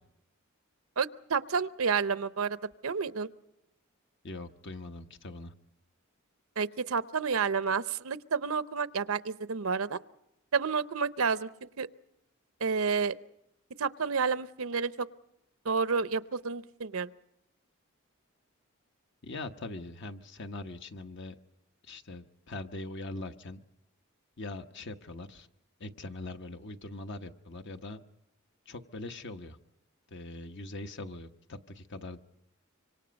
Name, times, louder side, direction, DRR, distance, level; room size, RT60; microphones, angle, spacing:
voice 1, 1.0-2.6 2.8-3.3 6.6-10.0 10.5-11.5 11.8-11.9 12.6-13.1 13.8-15.1 15.6-17.1, right 5 dB, 75° right, 14 dB, 0.7 m, -30 dB
voice 2, 4.2-5.5 19.2-21.4 21.8-23.6 24.4-25.5 25.8-28.0 28.7-29.6 30.1-32.2, left 2 dB, 55° left, 7 dB, 1.1 m, -42 dB
25.5 x 25.5 x 5.2 m, 0.83 s
head